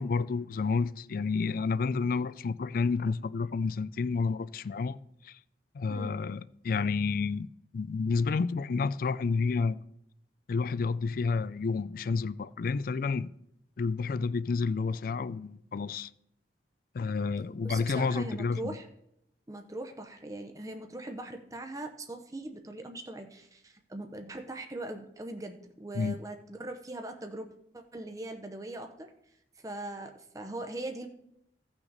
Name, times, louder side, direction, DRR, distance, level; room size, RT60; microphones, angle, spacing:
voice 1, 0.0-5.0 5.2-5.4 5.7-7.5 7.7-9.8 10.5-13.3 13.8-16.1 16.9-18.8 25.9-26.2, left 4 dB, 50° left, 0.3 m, -30 dB
voice 2, 17.6-18.9 19.5-27.5 27.7-29.1 29.6-31.1, right 2 dB, 20° right, 0.7 m, -40 dB
16.0 x 5.9 x 4.0 m
head